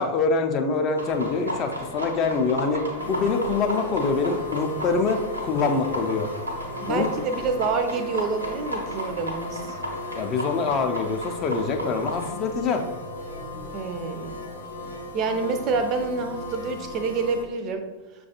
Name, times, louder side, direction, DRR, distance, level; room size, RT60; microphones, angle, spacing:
voice 1, 0.0-6.3 6.9-7.1 10.2-12.8, left 4 dB, 35° left, 5 dB, 0.4 m, -25 dB
sound 1, 1.0-12.3, equal, 85° right, 0.8 m, -35 dB
sound 2, 3.0-17.4, left 2 dB, 85° left, 0.7 m, -37 dB
voice 2, 6.8-9.8 13.7-14.4 15.1-17.8, right 4 dB, 35° right, 7 dB, 0.5 m, -27 dB
6.2 x 2.3 x 2.8 m, 1.2 s
figure-of-eight pair, 90°, 0 cm